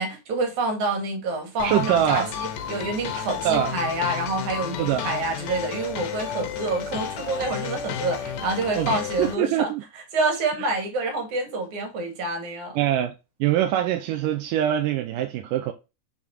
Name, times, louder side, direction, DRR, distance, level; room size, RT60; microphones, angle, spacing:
voice 1, 0.0-9.7 10.1-12.8, right 2 dB, 65° right, 3.1 m, -27 dB
sound 1, 1.6-9.3, left 8 dB, 80° left, 2.5 m, -32 dB
voice 2, 1.6-2.3 3.4-3.7 4.8-5.1 8.7-9.8 12.8-13.1 13.4-15.7, right 11 dB, 85° right, 2.2 m, -23 dB
7.3 x 3.6 x 4.4 m
omnidirectional pair, 3.8 m